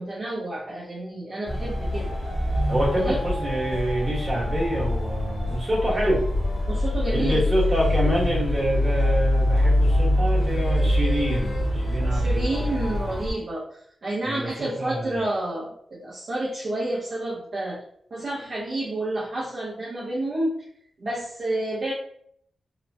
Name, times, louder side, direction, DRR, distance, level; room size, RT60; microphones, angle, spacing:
voice 1, 0.0-2.1 3.0-3.2 6.7-7.4 12.1-13.6 14.0-17.8 18.1-20.5 21.0-21.9, right 1 dB, 50° right, -7 dB, 0.7 m, -29 dB
sound 1, 1.5-13.3, left 1 dB, 60° left, 1.0 m, -24 dB
voice 2, 2.7-6.2 7.1-13.1 14.2-15.2, right 1 dB, 25° right, -6 dB, 1.2 m, -27 dB
2.9 x 2.1 x 2.6 m, 0.66 s
wide cardioid pair, 135°, 0 cm